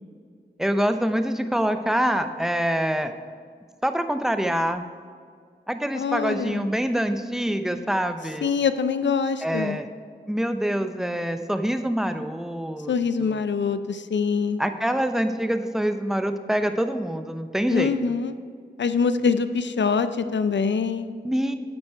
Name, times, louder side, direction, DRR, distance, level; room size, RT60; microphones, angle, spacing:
voice 1, 0.6-3.1 3.8-4.8 5.7-8.5 9.4-9.9 10.3-12.9 13.2-13.4 14.6-17.9 21.2-21.5, equal, ahead, 8 dB, 0.7 m, -25 dB
voice 2, 5.9-6.7 8.4-9.8 12.9-14.6 17.7-18.3 18.8-21.1, left 5 dB, 75° left, 11 dB, 0.5 m, -24 dB
8.8 x 7.4 x 4.5 m, 2.1 s
cardioid pair, 55°, 19 cm